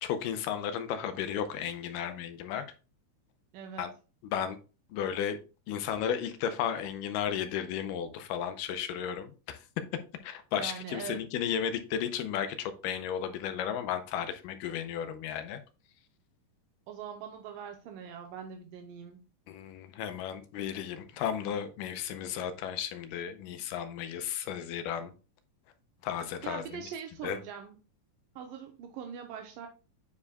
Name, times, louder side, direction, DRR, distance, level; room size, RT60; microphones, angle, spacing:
voice 1, 0.0-2.6 3.8-3.9 4.2-4.6 4.9-5.4 5.7-9.7 10.2-15.6 19.5-25.1 26.0-26.8 27.2-27.4, left 9 dB, 85° left, 2.2 m, -34 dB
voice 2, 3.5-3.9 10.5-11.2 16.9-19.2 26.4-27.8 28.4-29.7, right 7 dB, 80° right, 2.4 m, -42 dB
9.5 x 4.7 x 2.2 m
omnidirectional pair, 3.9 m